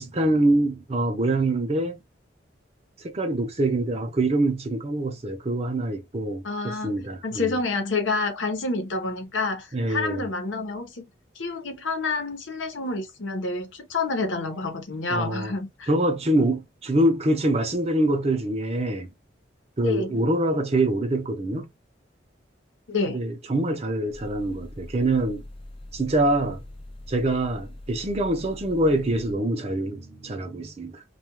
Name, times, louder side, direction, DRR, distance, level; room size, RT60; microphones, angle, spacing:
voice 1, 0.0-2.0 3.0-7.5 9.7-10.3 15.1-15.5 15.9-19.1 19.8-21.7 23.1-25.4 25.9-26.6 27.1-31.0, right 1 dB, 35° right, 0.6 m, -25 dB
voice 2, 6.4-7.0 7.2-11.1 11.4-15.9 19.8-20.2 22.9-23.2, left 3 dB, 85° left, 0.8 m, -28 dB
sound 1, 24.1-29.3, left 1 dB, 30° left, 0.5 m, -42 dB
2.3 x 2.3 x 2.9 m
head